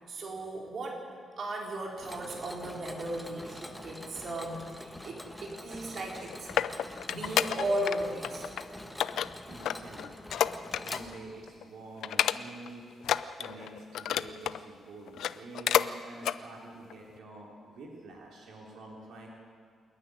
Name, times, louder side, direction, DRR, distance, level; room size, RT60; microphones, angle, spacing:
voice 1, 0.1-1.1 1.4-6.5 6.8-8.6, right 1 dB, 50° right, -1 dB, 4.2 m, -36 dB
Mechanisms, 2.0-11.6, left 1 dB, 5° left, 1.4 m, -45 dB
sound 1, 6.0-8.0 8.2-8.6 9.0-11.2 11.5-11.6 12.0-12.7 13.0-14.6 15.1-15.9 16.2-16.4 16.9-17.0, left 10 dB, 80° left, 0.5 m, -30 dB
voice 2, 9.5-12.8 13.4-19.3, right 2 dB, 80° right, -2 dB, 3.4 m, -47 dB
28.0 x 9.7 x 9.9 m, 2.2 s
cardioid pair, 125°, 0 cm